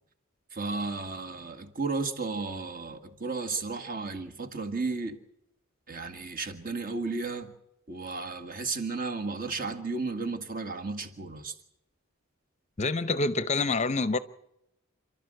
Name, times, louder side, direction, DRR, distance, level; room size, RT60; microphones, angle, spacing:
voice 1, 0.5-5.2 5.9-7.5 7.9-11.5, right 3 dB, 40° right, 1.9 m, -33 dB
voice 2, 12.8-14.2, left 3 dB, 35° left, 0.7 m, -27 dB
28.5 x 12.5 x 7.8 m
head